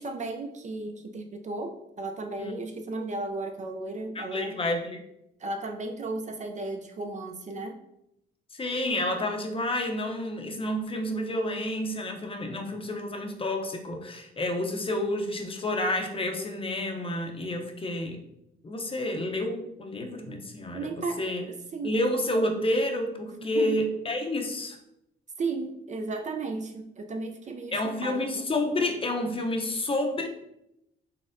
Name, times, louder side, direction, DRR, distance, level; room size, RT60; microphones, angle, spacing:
voice 1, 0.0-4.6 5.4-7.8 20.7-22.0 23.3-23.8 25.4-28.4, right 3 dB, 35° right, 5 dB, 0.4 m, -35 dB
voice 2, 4.1-5.0 8.5-18.2 18.6-21.4 21.8-24.8 27.7-30.3, left 1 dB, 25° left, 3 dB, 0.7 m, -29 dB
4.1 x 3.5 x 2.6 m, 0.81 s
cardioid pair, 90°, 20 cm